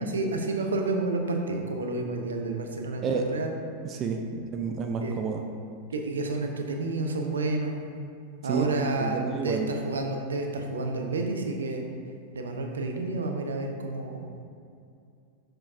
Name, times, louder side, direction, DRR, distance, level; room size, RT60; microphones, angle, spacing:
voice 1, 0.1-3.5 5.0-5.2 5.9-7.8 8.4-11.8 12.3-14.4, right 3 dB, 70° right, 3 dB, 0.6 m, -30 dB
voice 2, 3.8-4.2 4.5-5.4 8.5-8.6 9.0-9.7, right 6 dB, 30° right, 3 dB, 0.4 m, -29 dB
6.7 x 5.7 x 2.6 m, 2.4 s
figure-of-eight pair, 90°, 0 cm